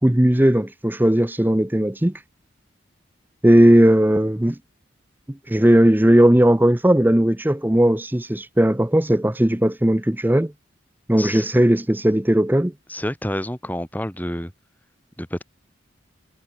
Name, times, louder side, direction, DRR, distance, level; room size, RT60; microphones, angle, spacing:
voice 1, 0.0-2.1 3.4-4.6 5.5-10.5 11.1-12.7, right 1 dB, 10° right, 0.6 m, -17 dB
voice 2, 11.1-11.4 12.9-14.5 15.2-15.4, left 1 dB, 10° left, 3.2 m, -28 dB
head